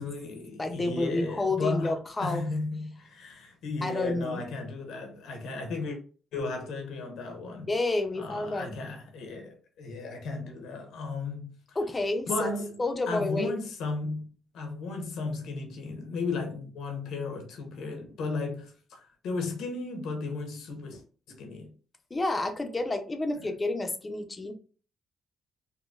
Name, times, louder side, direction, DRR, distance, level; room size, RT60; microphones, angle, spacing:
voice 1, 0.0-6.0 6.3-7.7 8.2-11.8 12.3-12.8 13.1-14.3 14.5-21.0 21.3-21.7 23.4-23.5, left 3 dB, 80° left, 1.0 m, -35 dB
voice 2, 0.6-2.4 3.8-4.4 7.7-8.8 11.8-12.5 12.8-13.6 22.1-24.5, left 2 dB, 25° left, 0.6 m, -29 dB
3.8 x 2.2 x 2.5 m
cardioid pair, 90°, 0 cm